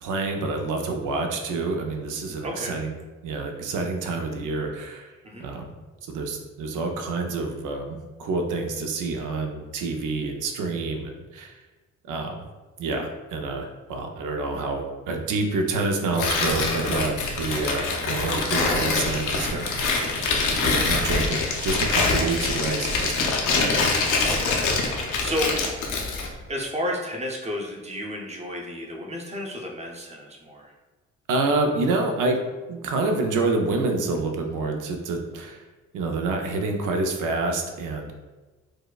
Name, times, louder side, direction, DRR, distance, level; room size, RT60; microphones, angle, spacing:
voice 1, 0.0-2.9 3.2-5.1 5.4-5.7 6.1-11.6 12.1-12.5 12.8-23.7 31.3-32.4 32.7-35.6 35.9-38.1, right 3 dB, 85° right, 3 dB, 0.6 m, -28 dB
voice 2, 2.4-2.7 5.2-5.4 24.3-25.6 26.5-30.7, equal, 20° right, -1 dB, 0.7 m, -32 dB
Tearing, 16.1-26.3, left 3 dB, 80° left, 0.7 m, -24 dB
4.6 x 2.1 x 2.3 m, 1.2 s
cardioid pair, 90°, 30 cm